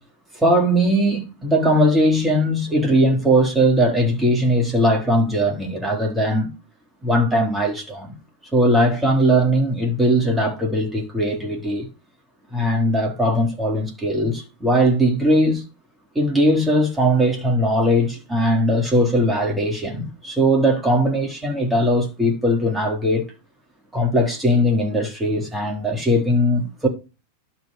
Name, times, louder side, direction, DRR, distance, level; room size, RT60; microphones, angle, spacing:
voice 1, 0.3-6.5 7.0-8.1 8.5-11.9 12.5-15.6 16.2-23.2 23.9-26.9, equal, 10° right, 3.8 m, -19 dB
11.5 x 5.7 x 5.0 m
figure-of-eight pair, 90°, 0 cm